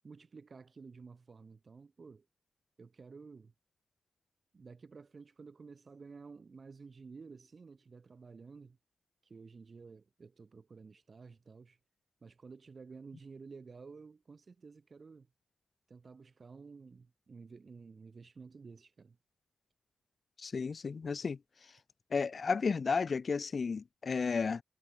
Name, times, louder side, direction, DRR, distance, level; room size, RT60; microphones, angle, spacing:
voice 1, 0.0-2.3 2.8-3.5 4.5-8.8 9.2-11.8 12.2-15.3 15.9-19.2, right 4 dB, 50° right, 2.7 m, -52 dB
voice 2, 20.4-21.4 22.1-24.6, left 5 dB, 55° left, 0.4 m, -33 dB
cardioid pair, 65°, 0 cm